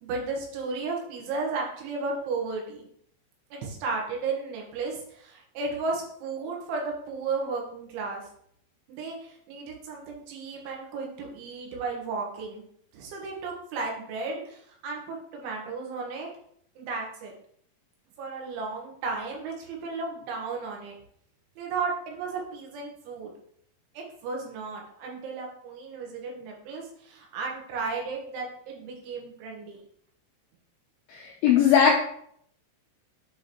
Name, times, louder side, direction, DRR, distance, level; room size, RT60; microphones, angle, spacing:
voice 1, 0.0-2.9 3.5-8.3 8.9-12.6 12.9-16.3 16.8-17.3 18.2-21.0 21.6-23.3 24.0-29.8, right 4 dB, 85° right, 0 dB, 3.8 m, -34 dB
voice 2, 31.1-32.0, left 7 dB, 90° left, 0 dB, 2.1 m, -20 dB
8.0 x 5.3 x 3.0 m, 0.67 s
omnidirectional pair, 5.3 m